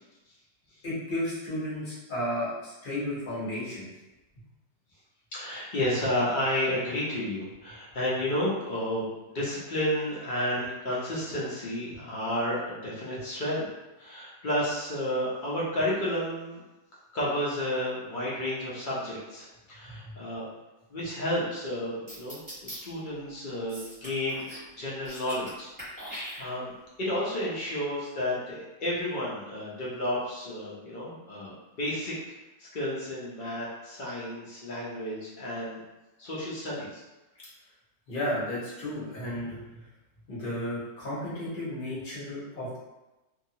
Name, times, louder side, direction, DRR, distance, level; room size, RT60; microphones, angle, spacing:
voice 1, 0.8-3.9 20.0-20.1 38.1-39.7 40.3-42.8, left 1 dB, 35° left, -8 dB, 1.0 m, -33 dB
voice 2, 5.3-13.7 14.0-16.6 17.1-20.5 20.9-24.4 24.7-26.7 27.0-32.1 32.6-35.8 36.2-37.0, left 1 dB, 75° left, -6 dB, 0.4 m, -31 dB
sound 1, 22.1-22.8 23.7-24.7 24.9-25.5 25.8-26.8, equal, 15° right, 0.8 m, -41 dB
2.7 x 2.4 x 2.7 m, 1.0 s
omnidirectional pair, 1.8 m